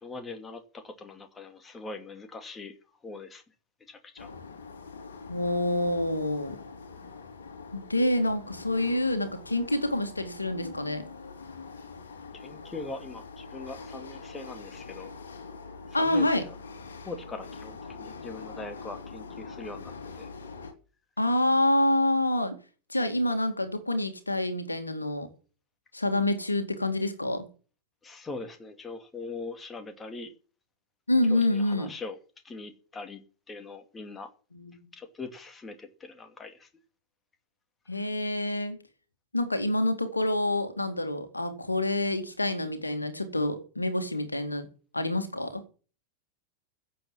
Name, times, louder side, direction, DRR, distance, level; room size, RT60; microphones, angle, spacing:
voice 1, 0.0-2.7 3.0-3.4 3.9-4.3 12.3-15.1 15.9-16.5 17.0-20.3 28.0-30.3 31.3-32.2 32.4-33.2 33.5-34.3 34.9-36.7 37.9-38.1, left 3 dB, 15° left, 2.5 m, -41 dB
sound 1, 4.2-20.7, left 4 dB, 65° left, 2.9 m, -44 dB
voice 2, 5.3-6.6 7.7-11.0 15.9-16.4 21.2-22.6 22.9-25.3 25.9-27.4 31.1-31.9 34.5-34.8 37.9-38.8 39.3-44.7 44.9-45.6, left 1 dB, 80° left, 2.3 m, -27 dB
16.0 x 7.8 x 7.3 m
figure-of-eight pair, 90°, 0 cm